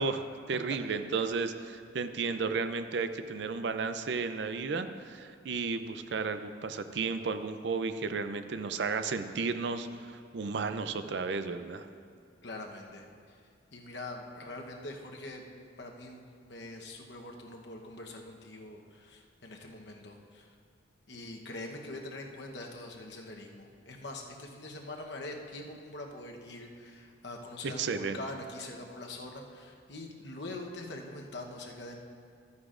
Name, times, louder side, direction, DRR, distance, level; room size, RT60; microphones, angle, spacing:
voice 1, 0.0-11.9 27.6-28.2, right 4 dB, 65° right, 10 dB, 0.5 m, -33 dB
voice 2, 12.4-13.1 13.7-15.4 15.8-20.5 21.1-32.0, left 2 dB, 65° left, 1 dB, 1.0 m, -43 dB
13.5 x 9.6 x 2.5 m, 2.2 s
head